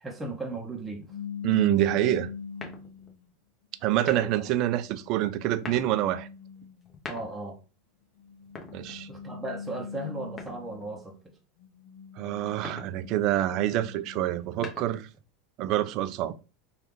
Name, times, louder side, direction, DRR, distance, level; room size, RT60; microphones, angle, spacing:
voice 1, 0.0-1.1 4.1-4.3 7.1-7.6 9.1-11.3, right 2 dB, 15° right, 0.8 m, -36 dB
sound 1, 1.1-3.3 3.9-7.0 8.2-11.1 11.6-14.5, left 6 dB, 65° left, 0.6 m, -42 dB
voice 2, 1.4-2.3 3.8-6.3 8.7-9.1 12.2-15.1 15.6-16.3, right 13 dB, 55° right, 0.4 m, -26 dB
sound 2, 2.6-3.2 3.9-4.5 5.4-6.0 6.8-7.6 8.4-9.3 10.4-11.0 12.4-13.0 14.3-15.2, left 4 dB, 25° left, 1.0 m, -43 dB
3.2 x 2.4 x 3.0 m
hypercardioid pair, 95°, 0 cm